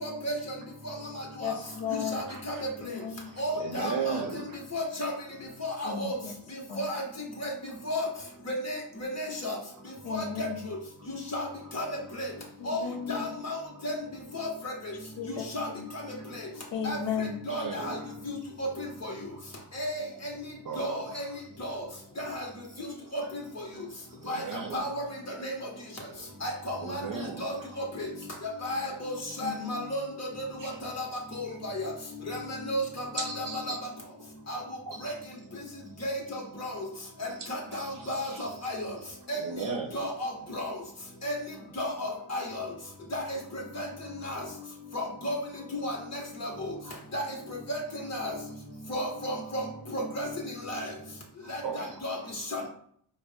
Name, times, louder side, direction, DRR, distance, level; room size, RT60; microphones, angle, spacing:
voice 1, 0.0-0.3 1.5-1.6 2.1-2.5 3.4-4.2 4.7-5.1 5.8-6.1 6.8-7.0 7.4-7.5 7.9-8.1 8.7-8.8 9.2-9.5 10.4-10.5 11.3-11.5 11.7-11.8 12.7-12.8 13.1-13.2 13.4-13.6 13.8-13.9 14.4-14.7 15.5-15.7 16.8-17.0 17.5-17.9 18.6-18.7 19.8-20.0 20.8-21.2 21.6-21.7 22.3-22.4 23.1-23.2 24.3-24.4 24.7-24.9 25.4-25.5 26.4-27.0 27.4-27.5 28.6-29.1 29.4-30.0 30.8-31.1 31.7-31.8 32.3-32.4 32.7-33.4 34.5-34.6 35.0-35.1 36.0-36.1 36.6-36.7 37.5-38.8 39.3-39.4 39.9-40.3 40.5-40.7 41.2-41.3 41.8-42.4 43.1-43.2 43.7-43.8 44.2-44.4 44.9-45.3 45.8-45.9 46.4-46.5 47.1-47.2 47.7-47.8 48.1-48.3 48.9-49.6 49.9-50.3 50.7-50.8 52.0-52.2 52.5-52.6, left 1 dB, 30° left, 0 dB, 1.5 m, -32 dB
voice 2, 1.4-2.2 2.8-3.3 5.8-6.3 6.7-6.8 10.0-10.6 12.6-13.3 15.2-15.4 15.7-15.8 16.7-17.4 29.4-29.8, left 7 dB, 60° left, 2 dB, 0.9 m, -34 dB
voice 3, 2.3-2.6 3.3-4.6 17.5-18.1 20.6-21.1 23.7-23.8 24.2-24.8 26.2-26.3 26.8-27.7 30.6-30.8 31.5-31.6 33.2-33.8 34.9-35.1 37.4-38.5 39.3-40.0 46.8-47.0 51.4-52.2, right 5 dB, 40° right, 3 dB, 0.7 m, -37 dB
4.9 x 2.6 x 3.5 m, 0.64 s
cardioid pair, 110°, 49 cm